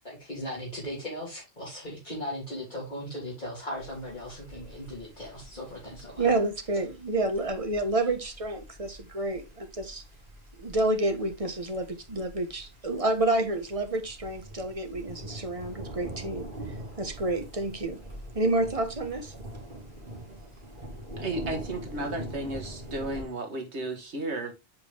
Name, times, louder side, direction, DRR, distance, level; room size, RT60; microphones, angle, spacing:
voice 1, 0.0-6.3, equal, 45° left, 3.4 m, -38 dB
sound 1, 3.8-23.2, right 1 dB, 50° right, 3.0 m, -44 dB
voice 2, 6.2-10.0 10.6-16.5 17.0-18.0 18.3-19.3, right 2 dB, 30° right, 1.3 m, -29 dB
voice 3, 21.2-24.5, right 2 dB, 80° right, 1.9 m, -33 dB
8.2 x 5.1 x 3.4 m
omnidirectional pair, 1.1 m